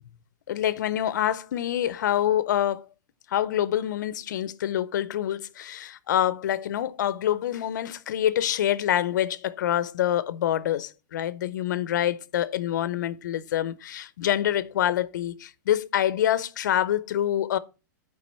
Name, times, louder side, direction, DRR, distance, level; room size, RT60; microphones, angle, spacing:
voice 1, 0.5-2.8 3.3-17.6, left 11 dB, 65° left, 0.6 m, -26 dB
9.3 x 4.8 x 4.3 m
supercardioid pair, 175°, 11 cm